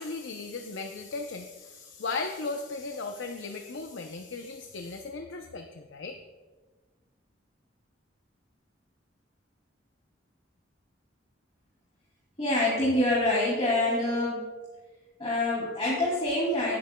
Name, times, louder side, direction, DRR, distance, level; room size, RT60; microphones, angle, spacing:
voice 1, 0.0-6.2, left 3 dB, 80° left, 5 dB, 0.6 m, -36 dB
voice 2, 12.4-14.4 15.2-16.8, left 1 dB, 30° left, -7 dB, 2.5 m, -26 dB
17.5 x 8.7 x 2.2 m, 1.3 s
head